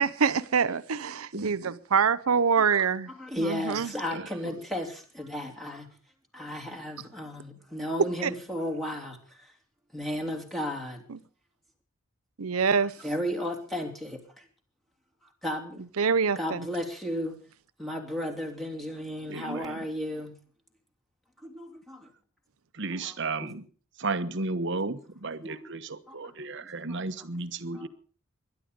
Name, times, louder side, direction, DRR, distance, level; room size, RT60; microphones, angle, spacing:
voice 1, 0.0-3.1 3.4-3.9 8.2-8.3 11.1-11.2 12.4-13.0 16.0-16.7, right 6 dB, 90° right, 0.7 m, -25 dB
voice 2, 1.3-1.8 4.1-4.6 19.3-19.9 22.7-23.6 24.0-27.9, right 3 dB, 55° right, 1.2 m, -34 dB
voice 3, 3.2-5.9 6.3-9.5 9.9-11.0 13.0-14.4 15.4-15.7 16.3-17.4 17.8-20.3 21.4-22.1 23.0-23.1 23.4-23.5 25.4-25.7 26.1-26.3 26.9-27.0 27.7-27.9, equal, ahead, 3.1 m, -34 dB
21.5 x 11.0 x 5.2 m
head